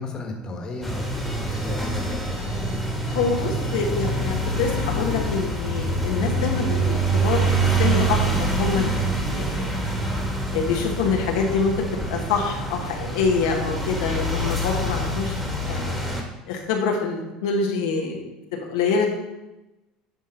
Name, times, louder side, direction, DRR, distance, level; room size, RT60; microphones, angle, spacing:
voice 1, 0.0-2.8, left 2 dB, 30° left, 2 dB, 1.5 m, -34 dB
sound 1, 0.8-16.2, right 2 dB, ahead, 1.8 m, -25 dB
voice 2, 3.1-7.5 7.8-9.8 10.5-11.8 12.0-15.3 15.7-16.0 16.5-18.2 18.5-19.1, left 5 dB, 85° left, 0 dB, 1.3 m, -26 dB
11.0 x 3.7 x 4.3 m, 0.99 s
supercardioid pair, 110°, 2 cm